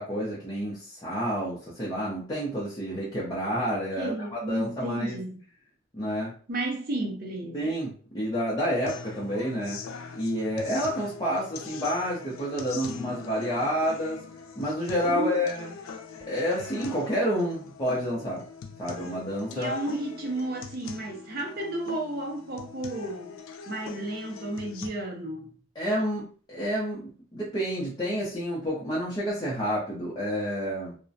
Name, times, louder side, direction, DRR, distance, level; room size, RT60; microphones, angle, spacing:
voice 1, 0.0-5.2 5.9-6.3 7.5-9.8 10.2-14.2 14.6-15.7 16.3-18.4 18.8-19.8 25.8-30.9, equal, 20° left, 0.5 m, -29 dB
voice 2, 4.0-5.4 6.5-7.6 15.0-15.4 19.5-23.4 23.7-25.5, right 1 dB, 50° right, 0.5 m, -32 dB
sound 1, 8.9-24.9, left 5 dB, 85° left, 0.4 m, -42 dB
2.4 x 2.1 x 2.5 m
head